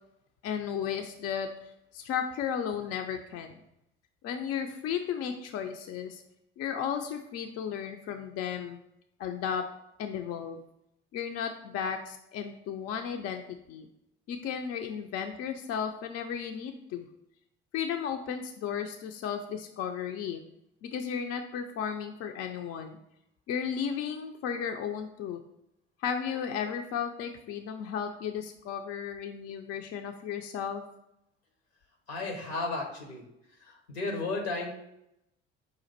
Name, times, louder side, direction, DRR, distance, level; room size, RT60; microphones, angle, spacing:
voice 1, 0.4-3.6 4.2-6.2 6.6-8.8 9.2-9.7 10.0-10.6 11.1-13.9 14.3-17.1 17.7-20.4 20.8-23.0 23.5-25.4 26.0-30.8, left 7 dB, 50° left, 5 dB, 0.5 m, -34 dB
voice 2, 32.1-33.2 33.6-34.7, left 3 dB, 85° left, 2 dB, 1.1 m, -33 dB
5.0 x 2.5 x 4.2 m, 0.81 s
hypercardioid pair, 60°, 31 cm